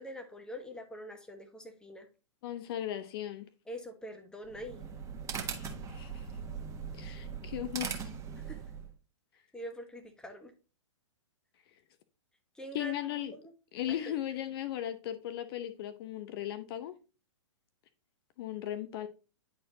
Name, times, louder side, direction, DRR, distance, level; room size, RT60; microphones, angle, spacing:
voice 1, 0.0-2.1 3.7-4.8 8.5-8.6 9.5-10.5 12.5-12.9 13.9-14.1, equal, 5° left, 1.2 m, -44 dB
voice 2, 2.4-3.5 5.5-6.3 6.9-8.1 12.7-13.3 13.7-16.9 18.4-19.1, left 12 dB, 50° left, 0.8 m, -37 dB
sound 1, 4.4-8.9, right 6 dB, 20° right, 1.4 m, -40 dB
10.5 x 4.4 x 2.8 m
hypercardioid pair, 125°, 16 cm